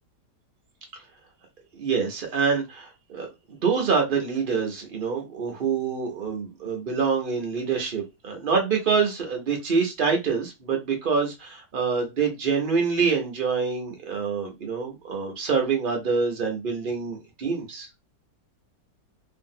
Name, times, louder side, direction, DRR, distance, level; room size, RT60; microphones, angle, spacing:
voice 1, 1.8-17.9, right 5 dB, 85° right, 0.4 m, -26 dB
2.8 x 2.6 x 2.6 m
omnidirectional pair, 1.8 m